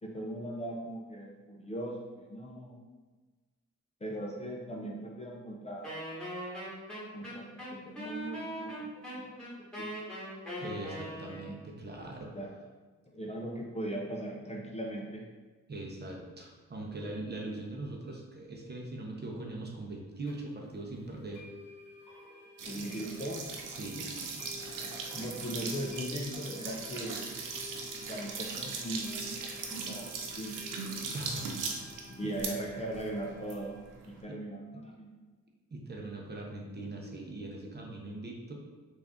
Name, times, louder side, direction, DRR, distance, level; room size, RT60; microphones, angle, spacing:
voice 1, 0.0-2.8 4.0-6.1 7.1-10.0 12.3-12.5 13.1-15.3 22.6-23.5 25.1-27.3 28.1-30.6 32.1-33.8 34.0-35.1, right 1 dB, 20° left, -1 dB, 0.5 m, -39 dB
Wind instrument woodwind instrument, 5.8-11.7, equal, 5° left, 1.4 m, -40 dB
voice 2, 10.6-12.3 15.7-21.4 22.6-22.9 23.7-24.2 25.1-25.3 31.1-31.9 32.2-32.3 34.2-34.3 35.7-38.5, right 2 dB, 35° right, 0 dB, 0.7 m, -41 dB
sound 1, 20.3-20.4 21.3-33.8, left 2 dB, 75° left, 1.1 m, -52 dB
sound 2, 22.6-34.2, right 4 dB, 80° right, 0.6 m, -40 dB
3.5 x 2.6 x 3.5 m, 1.3 s
cardioid pair, 85°, 31 cm